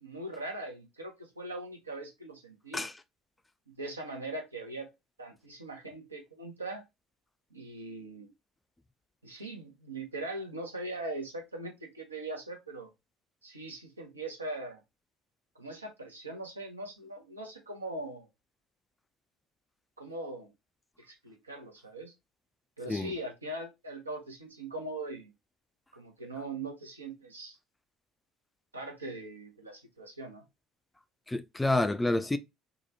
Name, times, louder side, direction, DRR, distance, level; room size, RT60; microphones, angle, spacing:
voice 1, 0.0-2.9 3.8-4.9 5.2-6.8 7.5-8.3 9.2-12.9 13.4-14.8 15.5-18.3 20.0-20.5 21.1-22.1 22.8-25.3 25.9-27.6 28.7-30.4, right 2 dB, 85° right, 0.7 m, -41 dB
voice 2, 31.3-32.4, left 2 dB, 10° left, 0.3 m, -28 dB
2.8 x 2.2 x 2.7 m
figure-of-eight pair, 60°, 0 cm